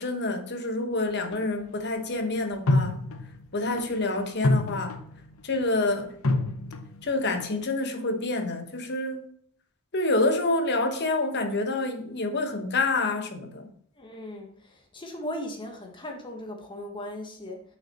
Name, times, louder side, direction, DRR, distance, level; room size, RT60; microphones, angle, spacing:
voice 1, 0.0-3.0 3.5-5.0 5.4-6.1 7.0-9.2 9.9-13.7, left 2 dB, 50° left, 1.0 m, -27 dB
sound 1, 1.3-1.4 2.7-3.4 3.8-4.0 4.4-5.3 6.2-7.0 7.4-7.6, left 2 dB, 80° left, 0.8 m, -26 dB
voice 2, 14.0-17.6, left 1 dB, 20° left, 1.3 m, -38 dB
6.5 x 5.8 x 4.2 m
head